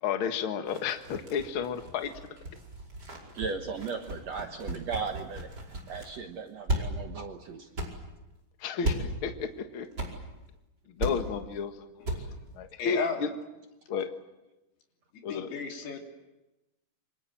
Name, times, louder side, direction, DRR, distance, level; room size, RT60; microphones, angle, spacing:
voice 1, 0.0-2.3 8.6-10.0 10.9-13.3 13.9-14.1 15.2-15.5, left 6 dB, 50° left, 7 dB, 1.7 m, -33 dB
sound 1, 0.7-6.2 6.7-6.8 7.2-7.3 7.8-7.9 8.8-9.0 9.9-10.1 10.4-10.5 11.0-11.1 11.5-11.6 12.0-12.2 12.5-12.6, right 1 dB, 25° right, 5.5 m, -35 dB
voice 2, 3.3-5.5 5.9-7.7, right 5 dB, 60° right, 5 dB, 1.9 m, -36 dB
voice 3, 12.5-13.3 15.3-16.0, left 5 dB, 85° left, 2 dB, 5.3 m, -34 dB
27.5 x 25.5 x 7.7 m, 1.0 s
omnidirectional pair, 4.5 m